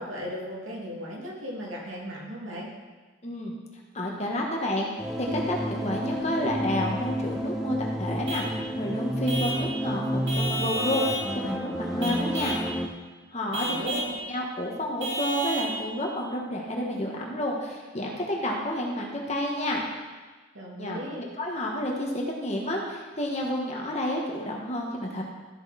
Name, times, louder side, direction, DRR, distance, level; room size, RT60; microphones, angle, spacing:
voice 1, 0.0-2.7 13.5-14.1 20.5-21.2, equal, 75° right, -3 dB, 2.6 m, -36 dB
voice 2, 3.2-3.5 3.9-12.6 13.3-14.0 14.3-19.8 20.8-25.2, left 1 dB, 35° left, -1 dB, 1.5 m, -30 dB
sound 1, 5.0-12.9, equal, ahead, 0.7 m, -30 dB
Vehicle horn car horn honking / Truck, 8.3-8.5 9.3-9.7 10.3-11.3 12.0-12.7 13.5-14.1 15.0-15.7, right 1 dB, 60° right, 2.6 m, -31 dB
13.0 x 7.0 x 4.2 m, 1.3 s
head